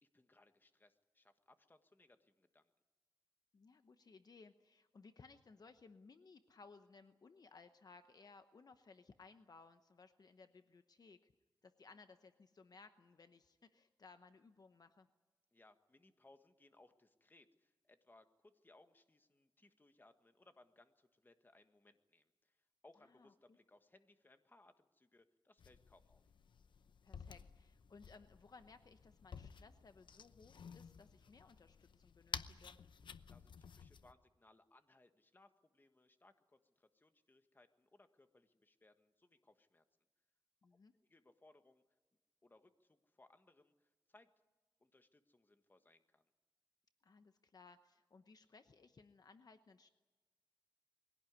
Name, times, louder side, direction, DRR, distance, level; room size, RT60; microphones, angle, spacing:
voice 1, 0.0-2.7 15.5-22.6 22.8-26.2 33.3-39.8 41.0-41.8 42.4-44.3 44.8-46.3, left 2 dB, 25° left, 8 dB, 1.5 m, -68 dB
voice 2, 3.5-11.3 11.6-15.1 23.1-23.6 27.0-32.8 40.6-40.9 47.0-49.9, left 4 dB, 55° left, 9 dB, 0.9 m, -62 dB
sound 1, 25.6-34.1, left 6 dB, 80° left, 0.8 m, -53 dB
21.5 x 16.5 x 9.6 m, 1.3 s
wide cardioid pair, 115°, 8 cm